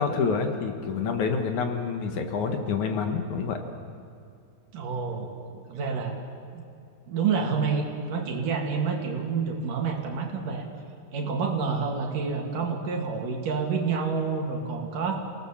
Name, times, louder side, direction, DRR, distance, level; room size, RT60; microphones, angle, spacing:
voice 1, 0.0-3.6, left 5 dB, 65° left, 5 dB, 2.8 m, -27 dB
voice 2, 4.7-6.2 6.5-6.6 7.1-10.7 11.1-15.2, right 5 dB, 70° right, 2 dB, 3.8 m, -28 dB
29.0 x 18.0 x 7.4 m, 2.4 s
omnidirectional pair, 3.9 m